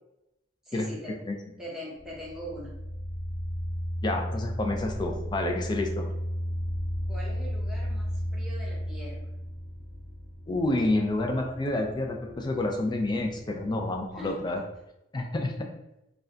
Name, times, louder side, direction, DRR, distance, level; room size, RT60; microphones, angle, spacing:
voice 1, 0.6-1.2 1.6-2.7 7.1-9.3 14.1-14.5, equal, 5° right, -6 dB, 0.7 m, -41 dB
sound 1, 2.0-14.8, equal, 40° right, 0.4 m, -35 dB
voice 2, 4.0-6.1 10.5-14.6 15.1-15.7, left 2 dB, 25° left, 3 dB, 0.3 m, -29 dB
2.3 x 2.2 x 3.7 m, 0.88 s
head